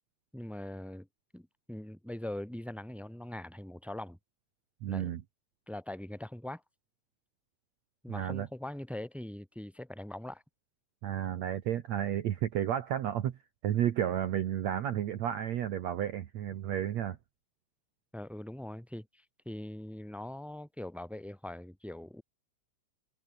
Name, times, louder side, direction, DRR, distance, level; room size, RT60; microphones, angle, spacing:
voice 1, 0.3-1.1 1.3-4.2 4.9-5.1 5.7-6.6 8.0-10.4 18.1-22.2, left 1 dB, ahead, 2.3 m, -42 dB
voice 2, 4.8-5.2 8.1-8.5 11.0-13.4 13.6-17.2, right 10 dB, 65° right, 2.2 m, -32 dB
omnidirectional pair, 4.0 m